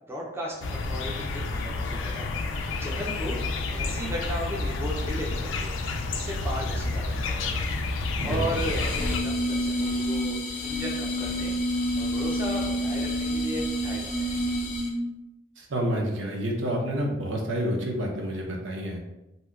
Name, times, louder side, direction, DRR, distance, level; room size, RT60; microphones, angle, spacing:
voice 1, 0.1-2.3 2.8-3.4 3.7-5.8 6.1-7.5 8.2-11.6 12.0-14.4, equal, 15° right, -3 dB, 0.4 m, -35 dB
sound 1, 0.6-9.2, left 3 dB, 85° left, 0.3 m, -30 dB
voice 2, 8.2-8.7 15.6-19.0, equal, 85° right, -1 dB, 0.7 m, -29 dB
sound 2, 8.5-15.1, equal, 40° left, 0.5 m, -28 dB
2.8 x 2.1 x 3.6 m, 0.93 s
head